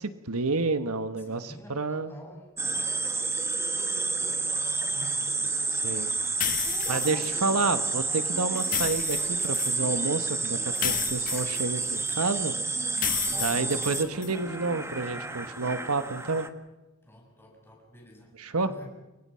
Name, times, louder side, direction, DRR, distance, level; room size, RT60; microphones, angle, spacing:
voice 1, 0.0-2.1 5.7-6.1 6.9-12.5 13.4-16.5 18.4-18.7, right 3 dB, 85° right, 10 dB, 1.5 m, -29 dB
voice 2, 1.2-2.6 2.8-5.4 7.0-7.4 13.2-13.7 17.0-18.9, equal, 10° left, 1 dB, 6.9 m, -49 dB
sound 1, 2.6-16.5, right 3 dB, 10° right, 1.5 m, -30 dB
sound 2, 6.4-7.3 8.6-9.8 10.8-12.1 13.0-14.3, left 10 dB, 40° left, 1.3 m, -32 dB
30.0 x 23.5 x 5.8 m, 1.0 s
head